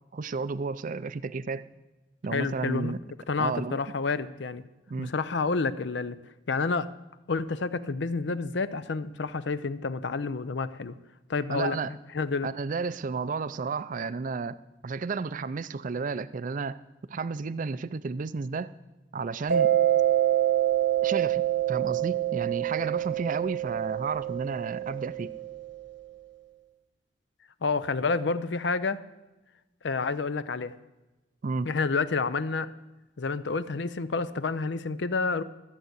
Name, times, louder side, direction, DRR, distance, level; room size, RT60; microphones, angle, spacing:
voice 1, 0.1-1.6 2.2-3.0 3.4-3.8 4.9-5.1 11.5-11.9 12.4-14.6 14.8-16.8 17.1-18.7 19.1-19.7 21.0-25.3 31.4-31.7, right 4 dB, 45° right, 15 dB, 0.4 m, -32 dB
voice 2, 2.3-2.9 3.3-4.6 5.0-6.2 6.5-6.9 7.3-11.0 11.3-12.5 27.6-29.0 29.8-30.8 31.7-32.7 33.2-35.4, left 4 dB, 70° left, 14 dB, 0.6 m, -29 dB
Mallet percussion, 19.5-25.9, right 12 dB, 80° right, 1.3 m, -26 dB
14.0 x 7.9 x 8.1 m, 1.1 s
head